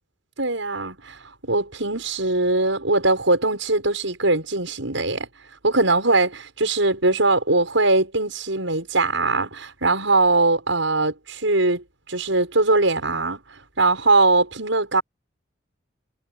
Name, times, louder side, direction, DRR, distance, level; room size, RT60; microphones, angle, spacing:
voice 1, 0.4-1.2 1.5-5.3 5.6-11.8 12.1-13.4 13.8-15.0, right 2 dB, 80° right, 6.9 m, -21 dB
head